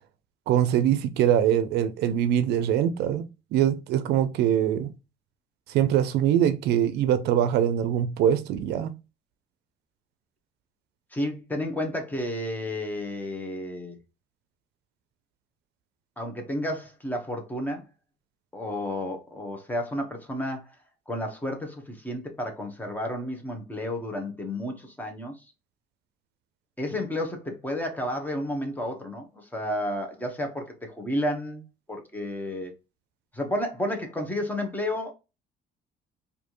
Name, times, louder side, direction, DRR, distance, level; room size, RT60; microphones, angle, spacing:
voice 1, 0.5-3.2 3.5-4.9 5.7-8.9, right 10 dB, 80° right, 0.5 m, -23 dB
voice 2, 11.1-14.0 16.2-17.8 18.5-20.7 21.1-25.4 26.8-32.7 33.3-35.1, left 1 dB, 10° left, 1.1 m, -31 dB
4.3 x 2.7 x 3.0 m
cardioid pair, 110°, 17 cm